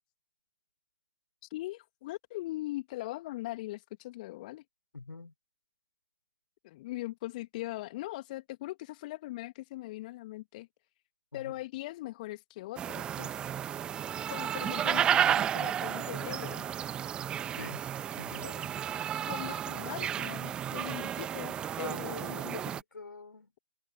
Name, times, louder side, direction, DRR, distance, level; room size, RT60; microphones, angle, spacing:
voice 1, 1.5-4.6 6.6-10.7 11.3-13.5 14.3-16.6 19.3-22.6, left 17 dB, 20° left, 1.7 m, -40 dB
voice 2, 4.9-5.3 11.3-11.5 17.6-17.8 18.1-18.7 21.8-23.5, left 4 dB, 60° left, 4.0 m, -45 dB
sound 1, 12.8-22.8, right 9 dB, 10° right, 1.1 m, -32 dB
figure-of-eight pair, 145°, 12 cm